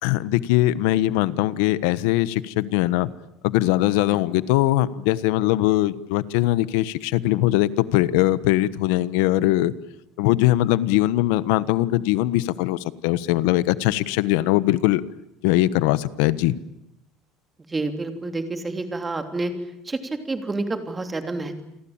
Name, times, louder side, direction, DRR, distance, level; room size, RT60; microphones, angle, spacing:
voice 1, 0.0-3.1 3.4-9.7 10.2-15.0 15.4-16.6, left 16 dB, 85° left, 17 dB, 1.2 m, -21 dB
voice 2, 17.7-19.5 19.8-21.6, right 2 dB, 15° right, 7 dB, 3.2 m, -29 dB
29.0 x 23.0 x 8.9 m, 0.81 s
cardioid pair, 150°, 0 cm